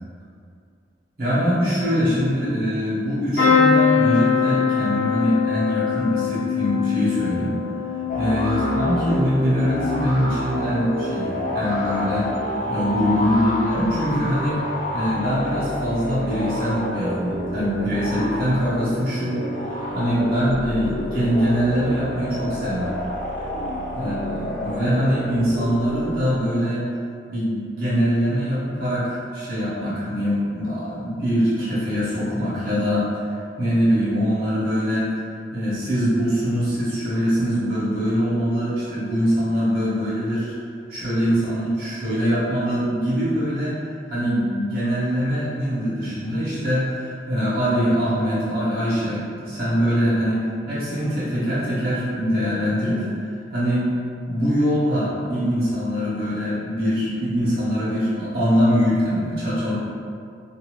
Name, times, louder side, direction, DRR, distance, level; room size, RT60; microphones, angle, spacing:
voice 1, 1.2-7.5 8.2-12.3 12.7-14.6 14.9-19.4 19.9-22.9 23.9-26.8 27.3-33.1 33.6-35.1 35.5-40.5 40.9-43.8 44.1-53.8 54.3-59.7, equal, 55° right, -11 dB, 1.2 m, -23 dB
sound 1, 3.4-11.2 11.6-12.2 13.4-13.6 13.9-14.0, left 6 dB, 85° left, 1.1 m, -23 dB
sound 2, 8.1-26.5, left 1 dB, 45° left, 0.4 m, -29 dB
2.7 x 2.6 x 3.0 m, 2.4 s
head